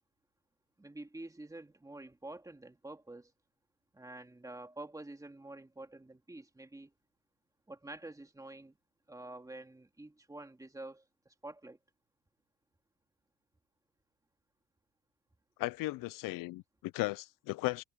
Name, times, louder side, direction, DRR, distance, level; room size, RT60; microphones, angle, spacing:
voice 1, 0.8-3.3 3.9-6.9 7.7-8.8 9.1-11.8, right 2 dB, 10° right, 2.7 m, -48 dB
voice 2, 15.6-17.8, left 20 dB, 85° left, 0.5 m, -36 dB
cardioid pair, 130°, 32 cm